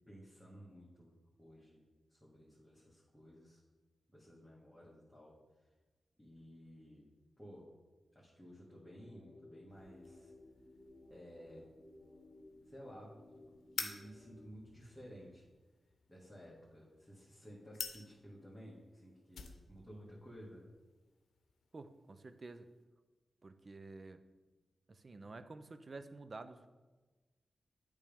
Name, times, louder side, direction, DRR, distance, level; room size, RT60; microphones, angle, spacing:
voice 1, 0.1-1.1 1.4-1.8 2.1-3.6 4.1-5.3 6.2-7.1 7.4-7.7 8.1-10.3 11.1-11.7 12.7-13.2 13.7-15.5 16.1-20.6, equal, 10° left, -7 dB, 2.0 m, -55 dB
sound 1, 8.6-14.6, left 2 dB, 30° left, 1.8 m, -59 dB
sound 2, 9.7-22.8, left 5 dB, 90° left, 0.7 m, -52 dB
voice 2, 21.7-22.7 23.4-24.2 24.9-26.7, right 3 dB, 45° right, 10 dB, 0.6 m, -50 dB
8.3 x 3.4 x 5.2 m, 1.2 s
cardioid pair, 60°, 0 cm